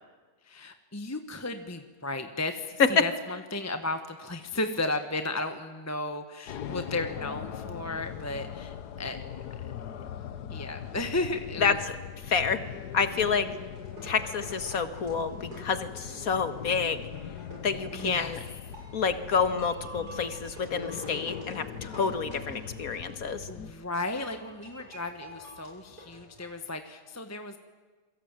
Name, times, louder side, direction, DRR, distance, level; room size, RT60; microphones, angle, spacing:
voice 1, 0.4-9.2 9.6-9.8 10.5-11.8 17.9-18.4 23.5-27.6, left 2 dB, 10° left, 7 dB, 1.3 m, -34 dB
sound 1, 6.5-23.7, left 9 dB, 85° left, 1.6 m, -41 dB
voice 2, 12.3-12.6 12.9-13.5 14.0-17.1 17.6-18.4 18.9-23.5, left 5 dB, 60° left, 10 dB, 2.1 m, -28 dB
sound 2, 13.6-26.5, equal, 85° right, 7.5 m, -48 dB
27.5 x 23.5 x 9.0 m, 1.4 s
omnidirectional pair, 1.7 m